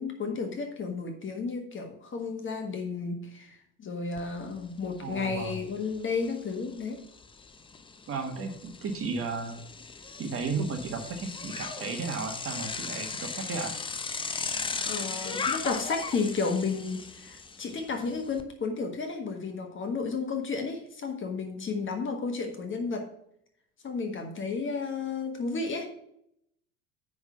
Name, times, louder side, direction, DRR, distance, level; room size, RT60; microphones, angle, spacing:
voice 1, 0.0-7.0 14.4-23.1 23.8-25.9, left 4 dB, 25° left, 5 dB, 1.5 m, -32 dB
Bicycle, 4.2-4.3 4.6-18.4, left 5 dB, 10° left, 0.6 m, -38 dB
voice 2, 5.0-5.6 8.1-9.6 10.2-13.7, right 4 dB, 30° right, 4 dB, 1.5 m, -34 dB
9.6 x 3.7 x 6.7 m, 0.74 s
figure-of-eight pair, 70°, 43 cm